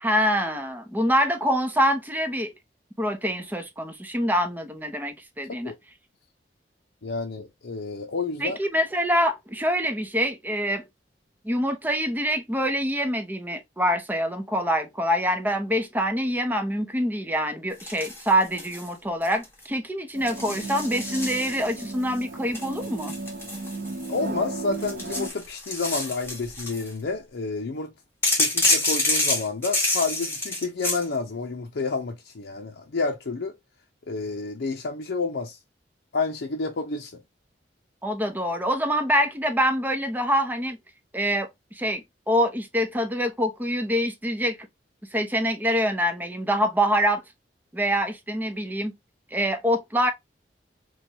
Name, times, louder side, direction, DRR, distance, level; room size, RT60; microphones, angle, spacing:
voice 1, 0.0-2.5 3.0-5.7 8.4-10.8 11.4-23.1 38.0-40.8 41.1-41.5 41.7-44.6 45.1-47.2 47.7-48.9 49.3-50.1, equal, 10° right, 0.6 m, -25 dB
voice 2, 7.0-8.6 24.1-27.9 28.3-33.6 34.1-35.6 36.1-37.2, left 3 dB, 75° left, 0.6 m, -30 dB
sound 1, 17.8-18.9 19.2-19.6 20.3-21.9 22.5-24.3 24.7-26.9 28.2-31.0, left 2 dB, 15° left, 1.4 m, -27 dB
sound 2, 20.1-25.3, right 2 dB, 50° right, 0.6 m, -35 dB
4.4 x 2.2 x 2.7 m
head